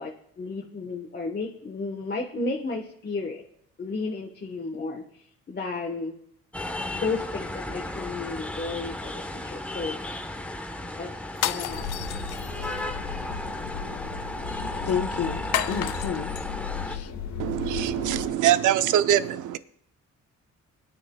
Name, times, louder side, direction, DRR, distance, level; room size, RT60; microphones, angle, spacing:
voice 1, 0.0-3.4 3.8-5.0 5.5-6.2 6.9-10.0 10.8-11.1 11.4-11.9, left 3 dB, 30° left, 1.2 m, -33 dB
sound 1, 6.5-17.0, left 1 dB, 5° left, 1.1 m, -35 dB
sound 2, 11.3-12.8 15.5-16.4, left 12 dB, 85° left, 0.6 m, -31 dB
sound 3, 11.7-18.3, left 7 dB, 70° left, 1.8 m, -36 dB
voice 2, 14.9-15.4 15.7-16.3 16.8-17.1, left 7 dB, 50° left, 0.8 m, -30 dB
voice 3, 17.4-19.6, right 11 dB, 80° right, 0.7 m, -23 dB
21.0 x 9.9 x 2.3 m
cardioid pair, 90°, 30 cm